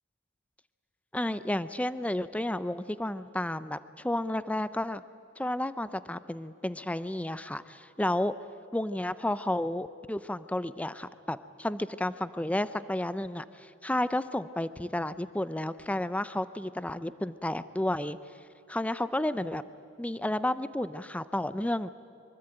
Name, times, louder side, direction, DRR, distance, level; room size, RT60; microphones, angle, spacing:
voice 1, 1.1-5.0 5.4-8.3 8.7-18.2 18.7-19.6 20.0-21.9, left 1 dB, 5° left, 14 dB, 0.5 m, -32 dB
24.0 x 23.5 x 9.0 m, 2.6 s
head